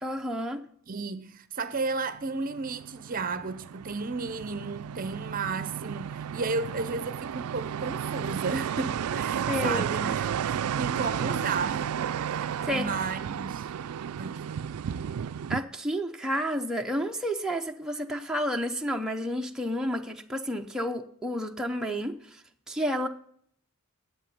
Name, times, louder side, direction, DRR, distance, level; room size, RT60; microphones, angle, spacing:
voice 1, 0.0-0.6 9.5-9.9 12.4-12.9 15.5-23.1, equal, 5° right, 0.7 m, -31 dB
voice 2, 0.9-12.0 12.2-12.4 12.7-13.7 14.2-14.6, right 4 dB, 40° right, 0.7 m, -33 dB
sound 1, 2.2-15.6, right 8 dB, 90° right, 0.4 m, -33 dB
11.0 x 8.0 x 6.9 m
head